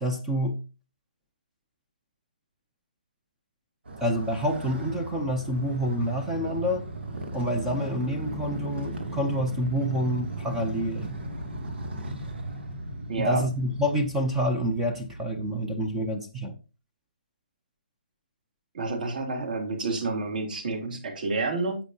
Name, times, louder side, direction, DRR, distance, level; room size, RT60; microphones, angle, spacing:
voice 1, 0.0-0.6 4.0-6.8 7.3-11.1 13.2-16.5, equal, 5° right, 0.6 m, -28 dB
Motorcycle, 3.9-16.1, right 1 dB, 85° right, 2.5 m, -37 dB
voice 2, 13.1-13.4 18.7-21.8, right 3 dB, 55° right, 3.2 m, -29 dB
9.9 x 8.0 x 2.8 m
hypercardioid pair, 175°, 6 cm